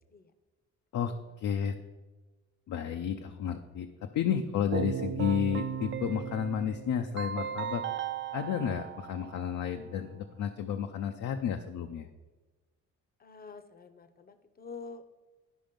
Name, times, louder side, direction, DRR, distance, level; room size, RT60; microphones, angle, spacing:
voice 1, 0.9-1.7 2.7-7.8 8.3-12.1, left 8 dB, 70° left, 5 dB, 0.6 m, -32 dB
Keyboard (musical), 4.7-9.7, right 9 dB, 40° right, 0.4 m, -36 dB
voice 2, 13.2-15.1, left 4 dB, 30° left, 11 dB, 0.8 m, -47 dB
11.5 x 5.1 x 5.2 m, 1.2 s
cardioid pair, 90°, 30 cm